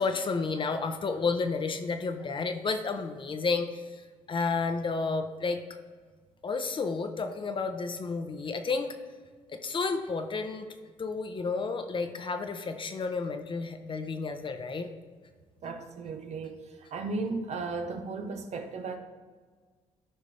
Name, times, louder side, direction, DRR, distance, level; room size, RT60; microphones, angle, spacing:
voice 1, 0.0-5.6 6.4-8.9 9.5-10.7 11.0-14.9, left 4 dB, 40° left, 7 dB, 0.9 m, -31 dB
voice 2, 15.6-19.0, right 3 dB, 60° right, 5 dB, 1.0 m, -35 dB
12.0 x 5.1 x 3.4 m, 1.5 s
supercardioid pair, 65°, 13 cm